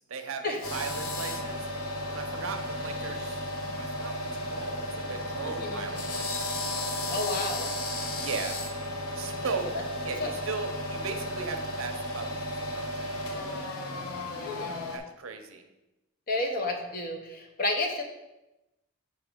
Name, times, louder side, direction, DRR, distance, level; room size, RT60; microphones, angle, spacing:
voice 1, 0.0-1.7 2.1-7.1 8.2-8.6 9.1-9.7 10.0-13.7 14.9-15.6, right 5 dB, 70° right, 7 dB, 0.6 m, -38 dB
sound 1, 0.6-15.0, left 1 dB, 85° left, 0.7 m, -34 dB
voice 2, 7.1-7.7 10.2-10.3 14.4-14.8 16.3-18.0, left 2 dB, 45° left, 4 dB, 0.7 m, -31 dB
5.7 x 4.9 x 3.5 m, 0.95 s
head